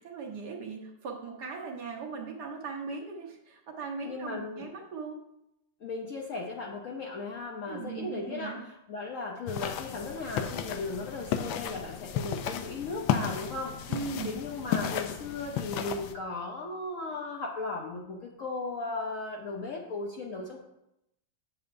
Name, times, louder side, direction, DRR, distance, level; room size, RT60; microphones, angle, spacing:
voice 1, 0.0-5.2 7.7-8.6 13.9-14.3, right 4 dB, 60° right, 0 dB, 1.5 m, -39 dB
voice 2, 4.0-4.7 5.8-13.9 14.2-20.6, left 3 dB, 60° left, 0 dB, 0.8 m, -36 dB
sound 1, 9.5-16.1, left 9 dB, 85° left, 1.4 m, -34 dB
8.0 x 7.4 x 2.6 m, 0.84 s
omnidirectional pair, 2.1 m